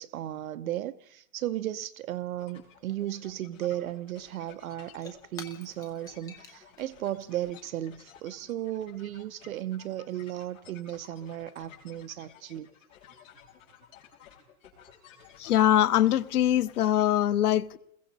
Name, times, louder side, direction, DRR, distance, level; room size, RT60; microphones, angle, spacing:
voice 1, 0.0-12.7, right 13 dB, 65° right, 0.8 m, -35 dB
sound 1, 2.4-17.0, left 8 dB, 60° left, 7.4 m, -55 dB
Shatter / Crushing, 4.7-9.2, left 5 dB, 10° left, 0.8 m, -52 dB
voice 2, 15.4-17.8, left 11 dB, 90° left, 1.1 m, -23 dB
29.5 x 21.5 x 4.1 m
supercardioid pair, 170°, 44 cm